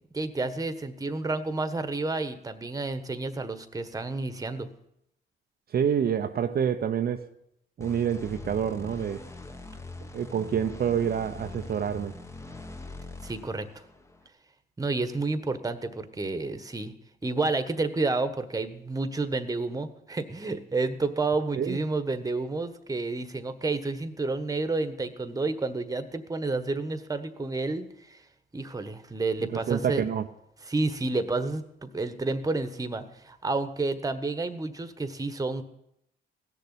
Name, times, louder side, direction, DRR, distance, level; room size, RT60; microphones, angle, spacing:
voice 1, 0.1-4.7 13.2-13.7 14.8-16.9 17.2-28.2 28.5-30.0 30.7-35.6, right 3 dB, 20° right, 1.3 m, -30 dB
voice 2, 5.7-7.3 7.8-9.2 10.1-12.1 21.6-21.8 29.5-30.3, right 8 dB, 50° right, 0.8 m, -27 dB
sound 1, 7.8-14.3, left 2 dB, 15° left, 1.2 m, -43 dB
16.5 x 6.9 x 9.9 m
cardioid pair, 90°, 20 cm